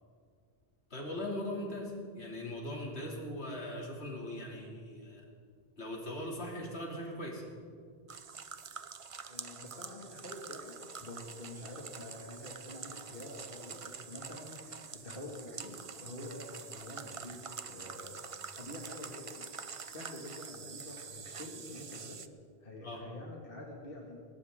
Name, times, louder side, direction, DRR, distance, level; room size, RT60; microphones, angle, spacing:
voice 1, 0.9-5.3 5.8-7.4 22.8-23.0, left 1 dB, 85° left, -1 dB, 3.0 m, -40 dB
sound 1, 8.1-22.3, right 6 dB, 40° right, 0.6 m, -46 dB
voice 2, 9.3-18.2 18.6-19.5 19.9-22.2 22.6-24.2, left 1 dB, 60° left, -2 dB, 2.3 m, -47 dB
20.5 x 19.0 x 3.7 m, 2.1 s
omnidirectional pair, 1.1 m